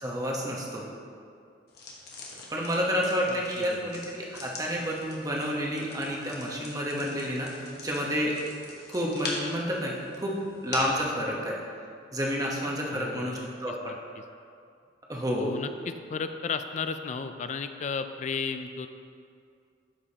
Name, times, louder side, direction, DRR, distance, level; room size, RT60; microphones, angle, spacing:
voice 1, 0.0-0.8 2.5-7.5 7.8-8.4 8.9-11.6 12.1-13.8 15.1-15.5, equal, 20° right, -2 dB, 1.0 m, -30 dB
sound 1, 1.7-11.1, left 2 dB, 60° left, 1.2 m, -42 dB
voice 2, 3.3-3.9 12.9-13.5 13.8-14.2 15.3-18.9, left 5 dB, 40° left, 9 dB, 0.3 m, -34 dB
11.5 x 5.1 x 2.8 m, 2.3 s
head